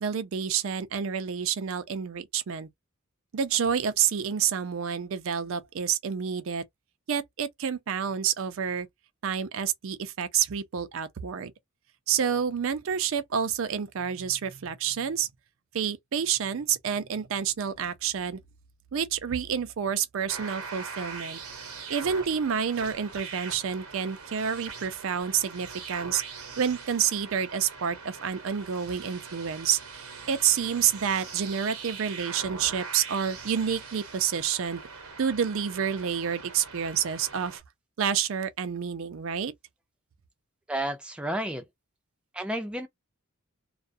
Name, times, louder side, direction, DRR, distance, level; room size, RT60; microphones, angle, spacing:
voice 1, 0.0-2.7 3.3-6.6 7.1-8.9 9.2-11.5 12.1-15.3 15.7-18.4 18.9-21.4 21.9-26.2 26.6-34.8 35.2-37.6 38.0-39.5, right 8 dB, 65° right, 0.4 m, -29 dB
sound 1, 20.3-37.6, right 5 dB, 85° right, 0.8 m, -42 dB
voice 2, 40.7-41.6 42.3-42.9, right 1 dB, 5° right, 0.4 m, -31 dB
2.3 x 2.1 x 2.5 m
head